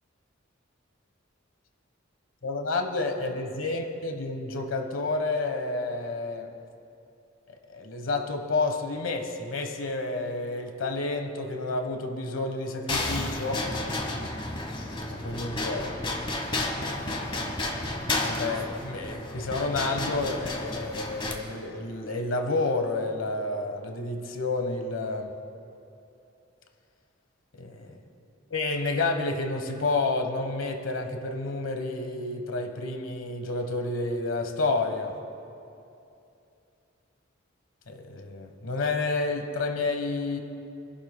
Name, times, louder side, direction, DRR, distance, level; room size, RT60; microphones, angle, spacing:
voice 1, 2.4-6.5 7.7-13.6 15.1-16.0 16.8-17.0 18.2-25.3 27.6-28.0 28.5-35.1 37.9-40.4, left 3 dB, 85° left, 5 dB, 1.2 m, -30 dB
sound 1, 12.9-21.3, left 2 dB, 25° left, 1.2 m, -32 dB
28.0 x 11.5 x 2.2 m, 2.7 s
head